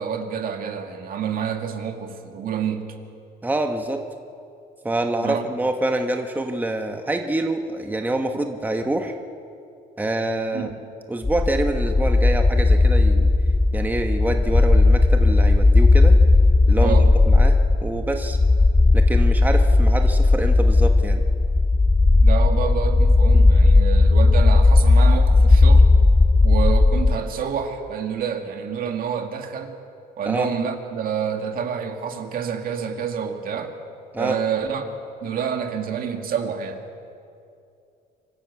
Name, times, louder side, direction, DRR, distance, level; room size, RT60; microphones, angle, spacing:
voice 1, 0.0-2.9 5.2-5.4 10.5-10.7 16.8-17.1 22.2-25.9 26.4-29.8 30.2-33.8 34.2-34.9 35.2-36.8, right 7 dB, 60° right, 4 dB, 2.1 m, -28 dB
voice 2, 3.4-4.0 4.8-9.2 10.0-10.7 11.1-13.3 13.7-16.1 16.7-18.4 18.9-21.2 30.3-30.5 34.1-34.4, right 2 dB, 10° right, 4 dB, 1.2 m, -26 dB
sound 1, 11.2-27.2, left 3 dB, 10° left, 0.6 m, -16 dB
25.5 x 12.5 x 8.3 m, 2.5 s
cardioid pair, 110°, 17 cm